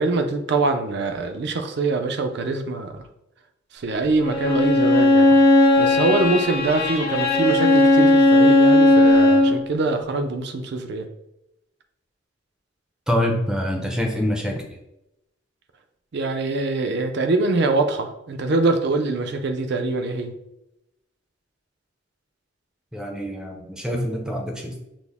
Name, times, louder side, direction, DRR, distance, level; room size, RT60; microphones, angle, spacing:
voice 1, 0.0-3.0 3.7-5.3 5.8-11.1 16.1-20.3, right 3 dB, 60° right, 6 dB, 0.5 m, -24 dB
Bowed string instrument, 4.2-9.6, left 2 dB, 50° left, 0.7 m, -16 dB
voice 2, 13.1-14.6 22.9-24.8, equal, 5° right, 1 dB, 0.5 m, -25 dB
6.1 x 2.0 x 3.5 m, 0.88 s
head